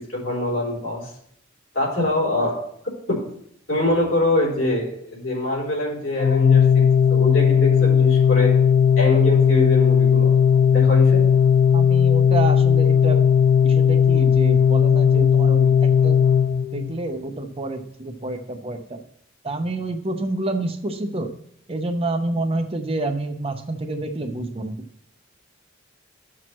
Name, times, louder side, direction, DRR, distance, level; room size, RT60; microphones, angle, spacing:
voice 1, 0.1-1.0 1.7-2.6 3.1-3.2 3.7-8.5 9.0-10.3 10.7-11.2, left 1 dB, 70° left, -4 dB, 3.5 m, -24 dB
Organ, 6.2-17.1, left 7 dB, 50° left, 0.4 m, -16 dB
voice 2, 11.7-13.2 13.6-16.2 16.7-19.0 19.4-21.3 21.7-24.8, right 2 dB, 30° right, 6 dB, 0.7 m, -28 dB
12.5 x 6.1 x 3.1 m, 0.70 s
head